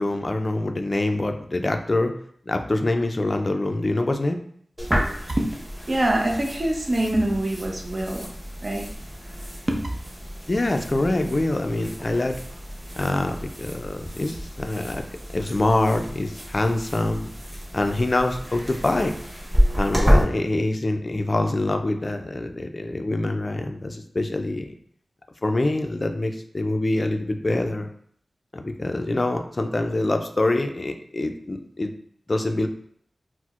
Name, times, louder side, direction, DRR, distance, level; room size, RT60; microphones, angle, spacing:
voice 1, 0.0-2.1 2.5-4.4 10.5-12.4 13.0-15.0 15.3-17.3 17.7-19.1 19.8-24.7 25.4-27.9 28.5-31.9 32.3-32.7, left 2 dB, 40° left, 5 dB, 0.3 m, -25 dB
sound 1, 4.8-20.2, equal, 10° right, 0.8 m, -29 dB
voice 2, 5.9-8.3 8.6-8.9 9.7-9.8, right 1 dB, 45° right, 1 dB, 0.6 m, -24 dB
4.3 x 2.0 x 2.4 m, 0.63 s
wide cardioid pair, 80°, 0 cm